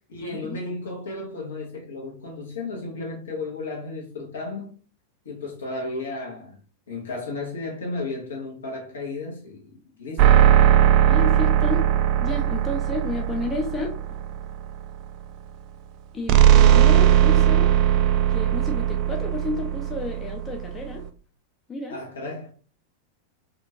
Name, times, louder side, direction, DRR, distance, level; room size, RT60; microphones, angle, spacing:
voice 1, 0.1-4.7 5.2-6.6 6.9-10.3 21.9-22.5, left 2 dB, 65° left, 1.0 m, -34 dB
sound 1, 10.2-14.7 16.3-21.1, right 11 dB, 40° right, 0.3 m, -19 dB
voice 2, 11.1-11.8 12.2-13.9 16.1-17.7 18.3-21.0 21.7-22.0, left 2 dB, 20° left, 0.4 m, -31 dB
2.8 x 2.4 x 2.7 m
figure-of-eight pair, 90°, 0 cm